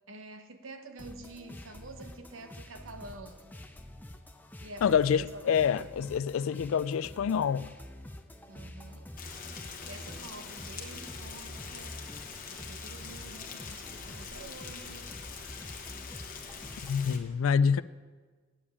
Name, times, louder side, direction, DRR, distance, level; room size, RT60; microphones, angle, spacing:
voice 1, 0.1-3.5 4.6-5.9 8.5-9.1 9.9-12.0 12.5-15.1, right 2 dB, 65° right, 0.9 m, -48 dB
sound 1, 1.0-17.1, left 1 dB, 10° left, 0.6 m, -47 dB
voice 2, 4.8-7.7 16.8-17.8, left 7 dB, 70° left, 0.3 m, -27 dB
Rain, 9.2-17.2, left 5 dB, 40° left, 1.1 m, -44 dB
8.5 x 7.2 x 8.7 m
head